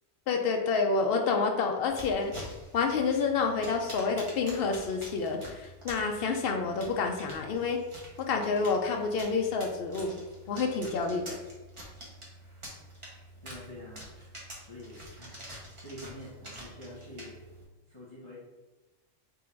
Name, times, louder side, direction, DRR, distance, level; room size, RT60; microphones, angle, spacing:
voice 1, 0.3-2.3 2.7-7.8 8.2-10.1 10.5-11.4, left 4 dB, 65° left, 3 dB, 0.6 m, -28 dB
sound 1, 1.9-17.6, equal, 30° right, 0.8 m, -47 dB
voice 2, 13.4-14.3 14.6-15.4 15.8-17.4 17.9-18.4, left 1 dB, 25° left, -9 dB, 1.0 m, -46 dB
3.8 x 2.5 x 4.3 m, 1.1 s
omnidirectional pair, 1.3 m